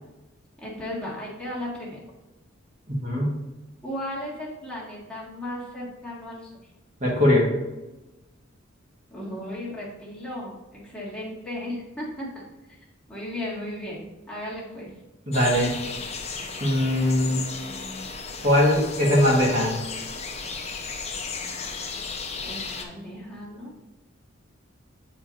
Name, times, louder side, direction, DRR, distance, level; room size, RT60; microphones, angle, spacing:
voice 1, 0.6-2.0 3.8-6.5 9.1-12.3 12.7-12.8 13.1-14.9 22.4-23.7, left 1 dB, 5° left, -7 dB, 1.6 m, -35 dB
voice 2, 2.9-3.4 7.0-7.5 15.3-15.7 16.6-17.4 18.4-19.8, left 1 dB, 35° right, -4 dB, 1.4 m, -21 dB
sound 1, 15.3-22.8, left 4 dB, 30° left, 0.7 m, -34 dB
9.2 x 4.5 x 2.5 m, 1.0 s
head